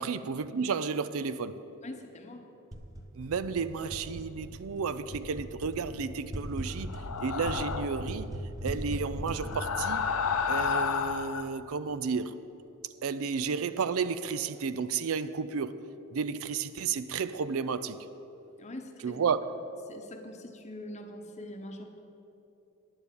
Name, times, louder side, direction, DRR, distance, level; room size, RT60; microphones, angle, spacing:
voice 1, 0.0-1.5 3.2-6.9 7.2-8.3 8.6-10.1 10.5-12.4 13.0-15.8 16.1-18.0 19.0-19.6, right 5 dB, 65° right, 0.4 m, -32 dB
voice 2, 1.8-2.4 18.6-19.2 19.9-22.0, left 1 dB, 30° left, 1.0 m, -43 dB
sound 1, 2.7-11.4, equal, 15° right, 1.1 m, -40 dB
sound 2, 6.9-8.1 9.3-11.5, left 6 dB, 80° left, 0.6 m, -31 dB
9.6 x 7.1 x 8.6 m
head